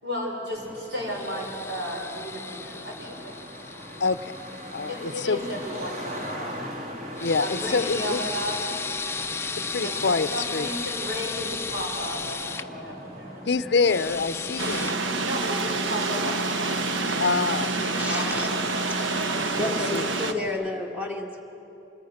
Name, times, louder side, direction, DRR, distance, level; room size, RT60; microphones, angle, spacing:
voice 1, 0.0-3.3 4.9-6.6 7.4-8.6 9.8-13.5 15.2-18.7, equal, 65° right, -1 dB, 5.2 m, -34 dB
Traffic noise roadway noise, 0.5-20.5, equal, 35° right, 2.3 m, -41 dB
sound 1, 1.1-6.3 7.1-12.7 13.7-15.0 16.0-19.7, left 4 dB, 15° left, 0.4 m, -36 dB
voice 2, 4.0-4.3 4.7-5.4 7.2-8.2 9.5-10.7 13.5-15.0 17.2-17.7 19.6-20.0, left 4 dB, 60° left, 13 dB, 0.6 m, -26 dB
sound 2, 14.6-20.3, right 3 dB, 85° right, 1.1 m, -27 dB
voice 3, 18.0-18.5 19.6-21.4, left 2 dB, 10° right, 1 dB, 1.7 m, -30 dB
25.5 x 20.5 x 6.5 m, 3.0 s
head